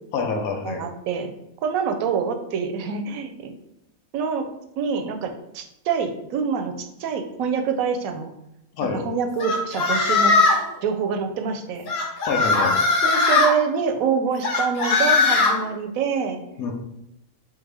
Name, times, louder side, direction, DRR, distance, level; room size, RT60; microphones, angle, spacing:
voice 1, 0.1-0.8 8.7-9.0 12.2-12.8 16.6-16.7, left 4 dB, 90° left, 3 dB, 1.2 m, -26 dB
voice 2, 0.6-1.3 1.6-3.5 4.1-8.3 8.9-10.3 10.8-11.9 13.0-16.4, right 6 dB, 80° right, 6 dB, 1.0 m, -26 dB
sound 1, 9.4-10.7 11.9-13.5 14.4-15.5, left 3 dB, 70° left, 1.2 m, -19 dB
3.8 x 3.6 x 3.3 m, 0.85 s
omnidirectional pair, 1.5 m